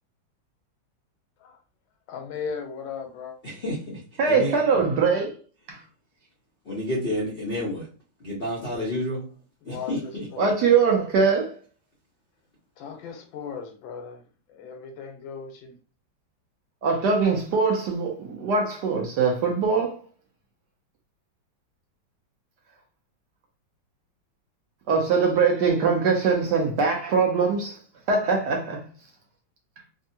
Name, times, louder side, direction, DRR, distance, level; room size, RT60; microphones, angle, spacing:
voice 1, 2.1-3.4 8.7-8.9 9.6-10.5 12.8-14.2 14.5-15.7, left 6 dB, 85° left, 1.4 m, -37 dB
voice 2, 3.4-4.0 4.3-4.6 6.7-7.9 8.2-9.2 9.6-10.5, equal, 60° left, 0.6 m, -30 dB
voice 3, 4.2-5.3 5.7-5.8 10.4-11.5 16.8-20.0 24.9-27.8 28.1-28.8, right 5 dB, 65° right, 1.1 m, -22 dB
3.5 x 2.1 x 2.7 m
omnidirectional pair, 2.1 m